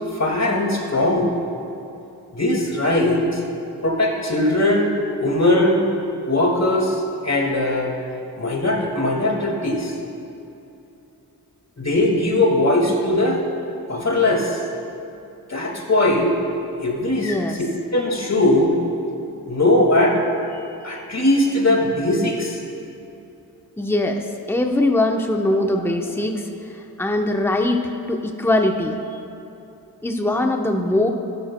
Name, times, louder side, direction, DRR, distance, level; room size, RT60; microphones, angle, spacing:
voice 1, 0.2-1.3 2.3-3.4 3.8-4.9 5.2-5.9 6.2-7.9 8.4-9.9 11.8-13.4 13.9-14.6 15.5-16.3 16.8-17.4 17.9-18.8 19.5-20.2 20.8-22.6, left 1 dB, 40° left, 0 dB, 2.1 m, -19 dB
voice 2, 17.2-17.6 23.8-26.5 27.0-27.8 28.1-29.0 30.0-31.1, left 1 dB, 5° left, 3 dB, 0.9 m, -21 dB
14.0 x 11.5 x 2.2 m, 2.8 s
cardioid pair, 45°, 39 cm